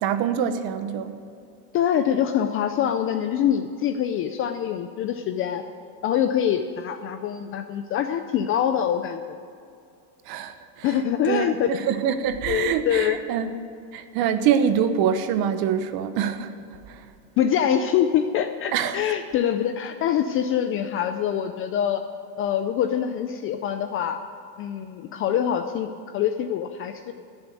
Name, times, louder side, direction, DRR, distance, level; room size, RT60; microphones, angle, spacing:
voice 1, 0.0-1.1 10.3-10.9 11.2-13.5 13.9-16.5 16.9-17.0 18.7-19.0, right 8 dB, 45° right, 10 dB, 1.1 m, -25 dB
voice 2, 1.7-5.6 6.0-9.2 10.8-11.7 12.5-13.2 17.4-22.0 22.4-24.2 24.6-27.1, left 9 dB, 30° left, 8 dB, 0.4 m, -24 dB
15.5 x 7.1 x 9.2 m, 2.4 s
supercardioid pair, 135°, 49 cm